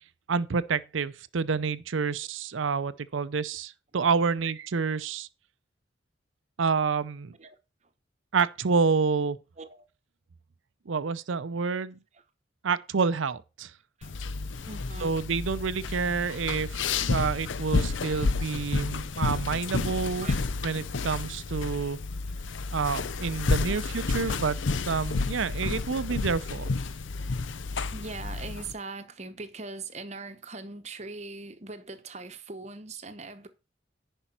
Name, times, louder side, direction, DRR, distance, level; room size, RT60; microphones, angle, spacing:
voice 1, 0.3-5.3 6.6-7.3 8.3-9.4 10.9-12.0 12.6-13.7 15.0-16.8 17.1-20.3 20.6-22.0 22.7-24.6 24.8-26.7, right 5 dB, 80° right, 0.6 m, -28 dB
sound 1, 14.0-28.7, left 3 dB, 75° left, 0.6 m, -31 dB
voice 2, 14.6-15.2 20.1-20.5 24.3-24.4 27.9-33.5, right 3 dB, 35° right, 0.9 m, -41 dB
10.0 x 5.4 x 4.3 m
head